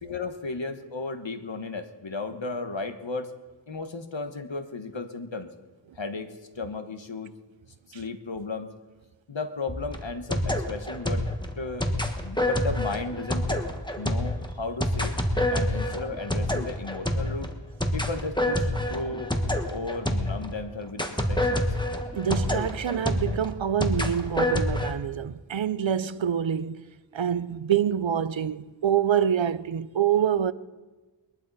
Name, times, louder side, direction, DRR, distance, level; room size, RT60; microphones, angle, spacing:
voice 1, 0.0-3.3 3.7-5.5 6.0-7.4 7.9-8.8 9.3-11.3 11.6-11.9 12.2-13.6 14.0-15.1 15.5-17.5 17.9-19.3 19.7-21.8, left 3 dB, 75° left, 1.3 m, -34 dB
sound 1, 9.7-20.6 21.0-24.9, left 1 dB, 10° left, 1.4 m, -27 dB
voice 2, 22.2-26.8 27.1-30.5, right 9 dB, 80° right, 0.6 m, -26 dB
22.0 x 12.0 x 4.1 m
wide cardioid pair, 45°, 45 cm